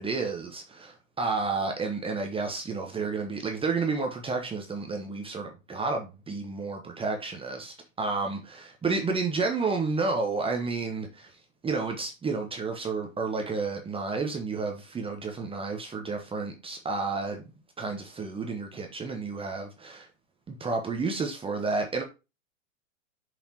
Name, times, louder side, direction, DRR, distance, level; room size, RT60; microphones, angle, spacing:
voice 1, 0.0-11.3 11.6-17.4 17.8-20.1 20.5-22.0, right 4 dB, 15° right, 1.1 m, -31 dB
6.9 x 5.2 x 2.9 m
hypercardioid pair, 120°, 38 cm